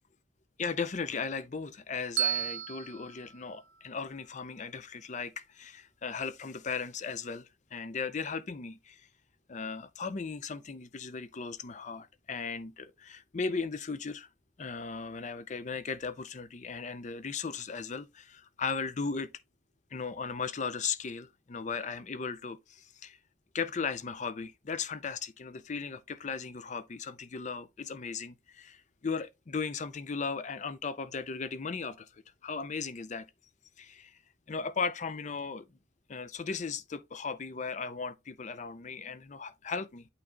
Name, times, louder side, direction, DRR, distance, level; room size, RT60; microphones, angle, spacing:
voice 1, 0.6-9.1 9.5-14.3 14.6-19.3 19.9-23.2 23.5-33.3 33.8-34.2 34.5-35.6 36.1-40.1, left 5 dB, 40° left, 0.5 m, -37 dB
Bell, 2.2-4.3, right 9 dB, 75° right, 0.7 m, -35 dB
8.6 x 3.2 x 3.8 m
head